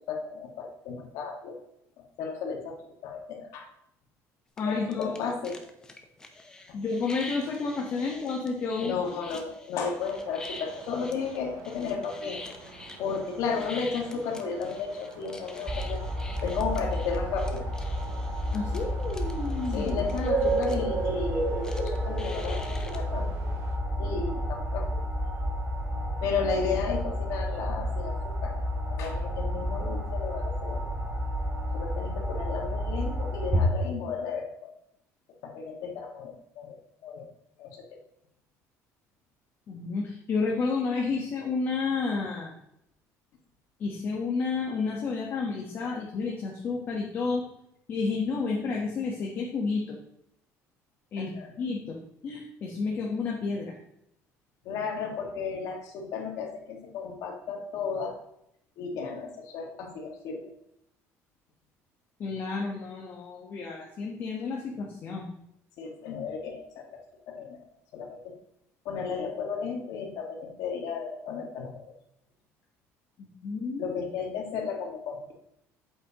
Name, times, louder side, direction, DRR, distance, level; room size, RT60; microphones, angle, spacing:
voice 1, 0.1-1.6 2.0-3.7 4.6-5.6 8.8-12.4 13.0-16.0 16.4-17.7 19.7-23.3 24.0-25.0 26.2-28.5 28.9-30.8 31.7-34.7 35.4-36.8 37.0-37.3 37.6-37.8 51.2-51.5 54.7-58.1 58.8-60.5 65.8-67.0 67.3-67.6 67.9-68.3 68.9-71.9 73.8-75.3, left 5 dB, 60° left, 2 dB, 1.7 m, -34 dB
voice 2, 4.6-5.1 6.7-8.9 18.5-19.9 39.7-42.5 43.8-47.4 47.9-49.9 51.1-52.0 52.2-53.8 62.2-65.2 73.2-74.0, left 4 dB, 35° left, -1 dB, 1.1 m, -31 dB
sound 1, 4.6-4.7 4.9-20.8 21.6-23.0, left 2 dB, 10° left, 0.7 m, -46 dB
sound 2, 10.0-23.8, right 3 dB, 75° right, 2.1 m, -50 dB
sound 3, 15.7-33.7, equal, 20° right, 1.1 m, -30 dB
8.5 x 7.9 x 2.9 m, 0.78 s
cardioid pair, 175°, 6 cm